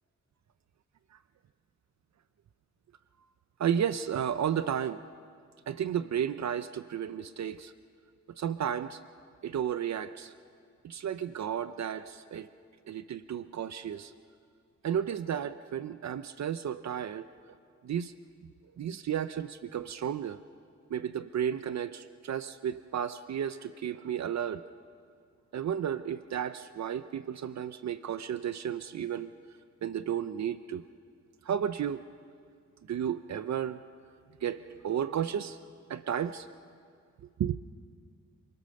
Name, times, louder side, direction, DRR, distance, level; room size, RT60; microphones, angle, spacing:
voice 1, 3.6-5.0 5.7-7.7 8.3-9.0 9.4-10.3 10.8-12.5 12.9-14.1 14.8-17.3 17.8-18.1 18.8-20.4 20.9-24.6 25.5-29.3 29.8-30.9 31.4-32.0 32.9-33.8 34.4-35.6 35.9-36.5 37.4-37.6, right 9 dB, 70° right, 12 dB, 0.6 m, -33 dB
27.5 x 22.0 x 6.6 m, 2.2 s
wide cardioid pair, 175°, 29 cm